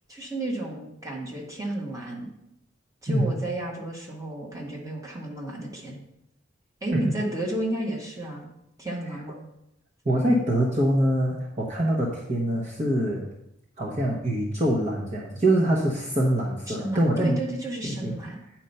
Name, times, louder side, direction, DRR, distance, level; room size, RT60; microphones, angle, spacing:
voice 1, 0.1-2.3 3.0-6.0 6.8-8.5 8.8-9.4 16.7-18.4, right 1 dB, 20° right, -2 dB, 1.6 m, -32 dB
voice 2, 10.0-13.3 13.8-17.4 17.8-18.1, right 1 dB, 40° right, -3 dB, 1.1 m, -24 dB
9.0 x 4.5 x 5.5 m, 0.81 s
head